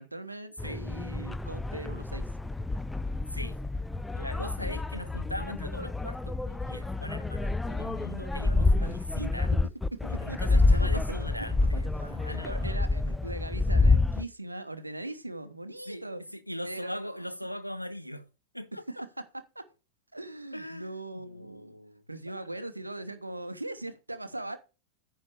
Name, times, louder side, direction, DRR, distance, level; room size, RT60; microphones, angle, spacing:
voice 1, 0.0-2.3 8.8-9.3 9.9-11.7 12.2-16.2 16.6-17.2 18.9-19.1 19.5-19.7 20.1-21.8 22.1-24.6, right 2 dB, 85° right, 0.8 m, -40 dB
sound 1, 0.6-14.2, left 3 dB, 5° left, 0.3 m, -28 dB
voice 2, 4.1-9.5 10.1-12.8 15.9-18.3 18.5-19.0 20.5-22.5, equal, 90° left, 0.8 m, -40 dB
9.6 x 3.7 x 6.5 m
figure-of-eight pair, 90°, 0 cm